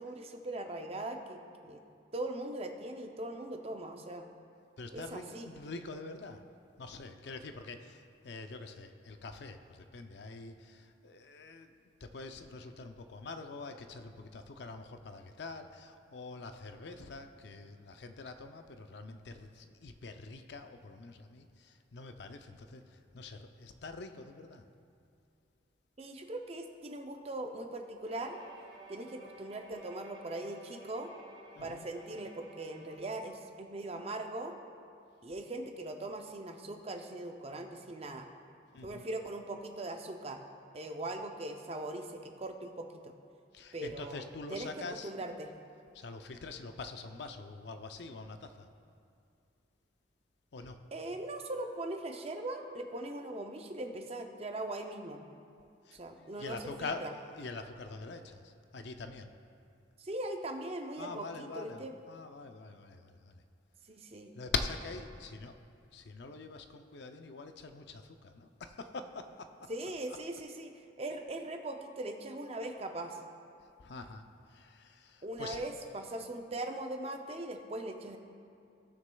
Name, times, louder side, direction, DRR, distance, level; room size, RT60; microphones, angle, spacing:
voice 1, 0.0-1.4 1.6-1.8 2.1-4.3 4.9-5.5 26.0-28.4 28.9-31.1 31.6-34.5 35.2-38.3 38.8-40.4 40.7-43.1 43.7-44.2 44.5-44.7 45.0-45.5 50.9-55.2 55.9-57.1 60.0-61.9 63.9-64.3 69.7-73.2 75.2-78.2, right 1 dB, 30° right, 5 dB, 0.5 m, -40 dB
voice 2, 4.8-6.4 6.8-24.6 31.6-31.9 38.7-39.1 43.5-45.5 45.9-48.7 50.5-50.9 55.8-59.3 61.0-63.4 64.3-65.6 65.9-69.5 73.8-75.7, left 3 dB, 60° left, 7 dB, 0.5 m, -44 dB
Bowed string instrument, 28.0-33.4, right 3 dB, 65° right, 2.0 m, -54 dB
16.5 x 6.4 x 2.3 m, 2.5 s
head